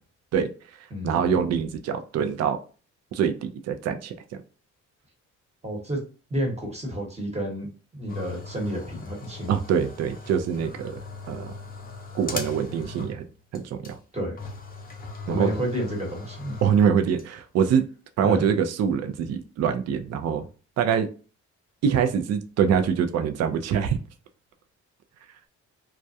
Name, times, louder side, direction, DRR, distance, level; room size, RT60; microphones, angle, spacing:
voice 1, 1.0-2.6 3.1-4.1 9.5-11.0 11.3-11.5 12.1-13.2 13.5-14.0 15.3-15.5 16.6-17.8 18.2-20.5 20.8-21.1 21.8-24.0, right 7 dB, 55° right, 8 dB, 0.5 m, -24 dB
voice 2, 5.6-6.0 6.3-9.5 14.1-14.4 15.3-16.6 18.2-18.5, equal, 20° right, 0 dB, 1.1 m, -30 dB
sound 1, 8.1-13.3 13.5-13.6 13.8-13.9 14.4-17.2, left 3 dB, 30° left, 0.6 m, -39 dB
2.3 x 2.1 x 2.6 m, 0.36 s
cardioid pair, 90°, 30 cm